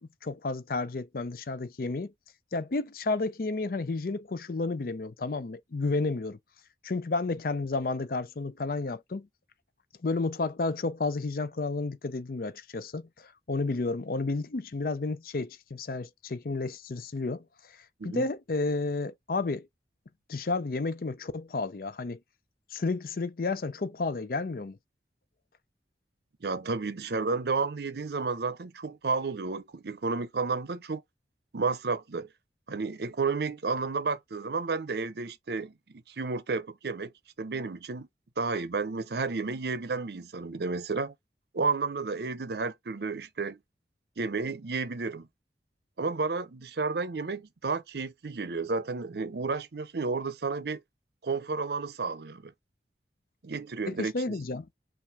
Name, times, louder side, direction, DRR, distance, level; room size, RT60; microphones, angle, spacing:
voice 1, 0.2-2.1 2.5-6.4 6.8-9.3 10.0-17.4 18.0-19.7 20.3-22.2 22.7-24.8 53.9-54.7, left 3 dB, 55° left, 0.5 m, -31 dB
voice 2, 26.4-31.0 31.5-32.3 32.7-37.1 37.4-38.1 38.4-41.1 41.5-43.6 44.2-45.3 46.0-50.8 51.2-52.5 53.4-54.1, right 4 dB, 65° right, 0.6 m, -32 dB
5.8 x 2.5 x 3.2 m
head